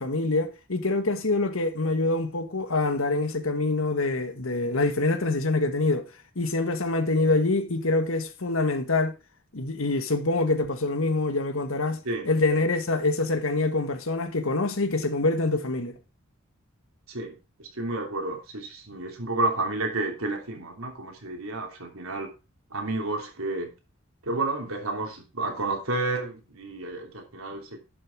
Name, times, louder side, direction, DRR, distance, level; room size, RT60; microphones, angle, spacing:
voice 1, 0.0-6.1 6.3-9.1 9.5-16.0, left 2 dB, 75° left, 1.5 m, -25 dB
voice 2, 17.1-22.3 22.7-23.7 24.2-27.8, right 2 dB, 85° right, 3.1 m, -31 dB
11.5 x 6.5 x 4.6 m
head